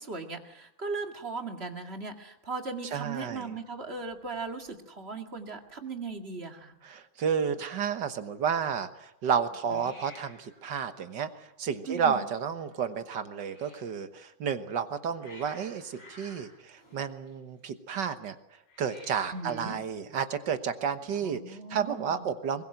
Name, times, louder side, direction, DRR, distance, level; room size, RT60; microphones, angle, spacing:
voice 1, 0.0-6.8 9.7-9.8 11.9-12.2 19.3-19.7 21.1-22.3, right 4 dB, 30° right, 4 dB, 2.2 m, -38 dB
voice 2, 2.9-3.5 6.8-18.4 18.8-22.6, right 7 dB, 60° right, 10 dB, 1.8 m, -31 dB
Hiss, 3.5-4.7 5.0-5.4 5.7-5.8 6.0-6.7 9.7-14.0 14.7-17.7 18.6-19.5, left 1 dB, 80° left, 8.7 m, -55 dB
23.0 x 21.0 x 7.8 m, 0.85 s
omnidirectional pair, 2.2 m